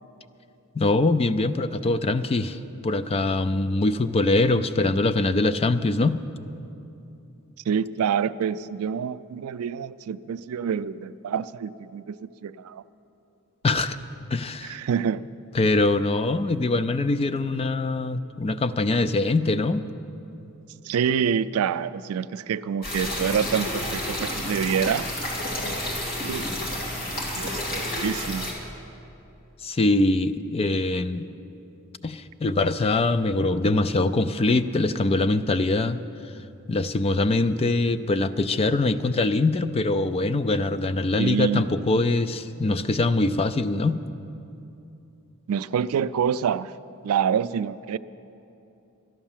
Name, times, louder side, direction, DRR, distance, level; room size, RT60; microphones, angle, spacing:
voice 1, 0.8-6.2 13.6-14.0 14.3-14.8 15.5-19.8 29.6-31.3 32.0-36.0 36.7-44.0, left 2 dB, 25° left, 12 dB, 0.4 m, -23 dB
voice 2, 7.7-12.8 14.6-15.2 20.8-25.1 25.6-25.8 26.2-26.5 27.4-28.5 41.2-41.7 45.5-46.7 47.0-48.0, right 7 dB, 75° right, 15 dB, 0.3 m, -27 dB
sound 1, 22.8-28.5, left 1 dB, 45° left, 2.6 m, -30 dB
12.5 x 11.0 x 7.3 m, 2.8 s
head